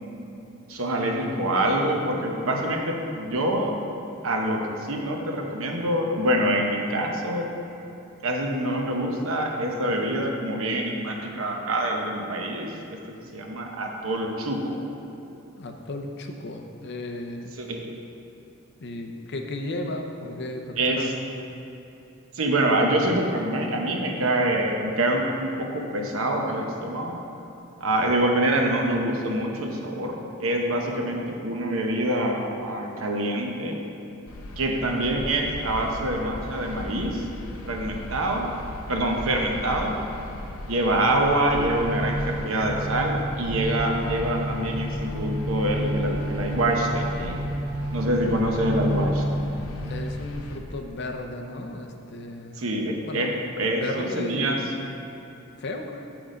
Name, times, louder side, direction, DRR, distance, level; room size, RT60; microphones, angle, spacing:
voice 1, 0.7-3.7 4.2-7.5 8.2-13.0 13.3-14.8 17.6-17.8 20.8-21.1 22.3-27.2 27.8-33.8 34.6-37.2 37.6-38.5 38.9-39.9 40.7-47.4 47.9-49.2 52.6-54.6, right 1 dB, 70° right, 1 dB, 1.0 m, -25 dB
voice 2, 15.6-17.5 18.8-21.2 40.9-41.0 49.5-52.6 53.0-53.4 53.7-54.9 55.6-56.0, left 2 dB, 55° left, 3 dB, 0.7 m, -35 dB
sound 1, 34.3-50.6, left 1 dB, 90° left, 0.7 m, -38 dB
sound 2, 41.5-50.0, equal, 15° right, 0.5 m, -30 dB
7.0 x 6.1 x 5.0 m, 3.0 s
head